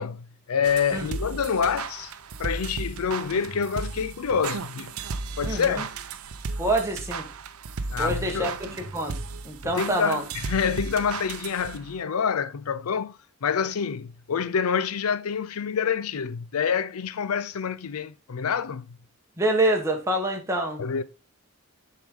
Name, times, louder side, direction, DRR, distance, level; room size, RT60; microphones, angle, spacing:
voice 1, 0.0-2.1 2.4-4.9 5.4-5.9 7.9-8.6 9.6-18.9 20.8-21.0, left 6 dB, 90° left, 0.5 m, -27 dB
sound 1, 0.6-12.0, right 4 dB, 85° right, 0.6 m, -35 dB
voice 2, 6.6-7.3 8.0-8.5 8.9-9.1 9.4-10.2 19.4-20.9, right 1 dB, 15° right, 1.1 m, -26 dB
6.9 x 4.6 x 3.6 m
head